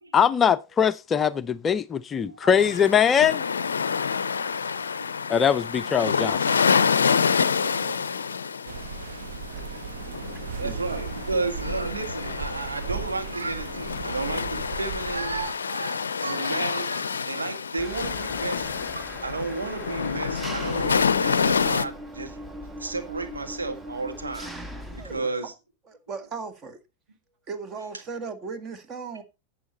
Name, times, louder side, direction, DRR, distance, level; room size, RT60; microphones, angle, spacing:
voice 1, 0.1-3.4 5.3-6.4, left 8 dB, 20° left, 0.5 m, -21 dB
voice 2, 2.2-2.5 5.0-5.1 7.3-8.1 9.5-9.9 10.6-22.5 22.8-24.5 24.9-25.5, right 3 dB, 75° right, 1.6 m, -33 dB
sound 1, 2.6-21.9, left 6 dB, 70° left, 0.5 m, -28 dB
sound 2, 8.7-15.5, right 5 dB, 60° right, 1.2 m, -36 dB
voice 3, 10.3-10.8 25.0-25.5 25.9-26.8 27.5-29.2, right 5 dB, 30° right, 1.8 m, -37 dB
Engine, 17.8-25.2, equal, 10° right, 1.2 m, -40 dB
11.0 x 8.1 x 4.1 m
figure-of-eight pair, 90°, 0 cm